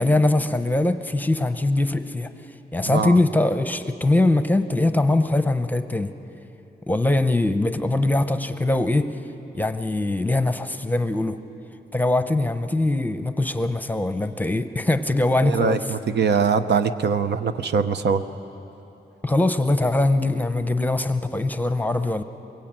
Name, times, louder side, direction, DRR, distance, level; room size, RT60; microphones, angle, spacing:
voice 1, 0.0-2.3 2.7-6.1 6.9-9.1 9.5-11.4 11.9-15.8 19.2-22.2, left 2 dB, 10° left, 9 dB, 0.7 m, -22 dB
voice 2, 2.9-3.2 15.4-18.2, right 6 dB, 80° right, 9 dB, 0.9 m, -22 dB
23.0 x 21.5 x 8.9 m, 2.9 s
wide cardioid pair, 175°, 17 cm